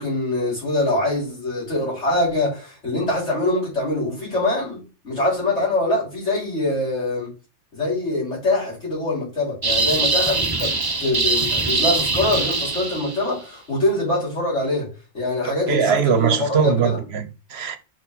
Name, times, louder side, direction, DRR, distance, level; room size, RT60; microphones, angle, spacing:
voice 1, 0.0-7.3 7.7-10.7 11.0-17.0, left 2 dB, 85° left, 4.8 m, -24 dB
sound 1, 9.6-13.3, right 3 dB, 25° right, 0.7 m, -22 dB
voice 2, 15.7-17.8, right 6 dB, 65° right, 1.0 m, -21 dB
6.2 x 4.5 x 4.1 m
omnidirectional pair, 1.2 m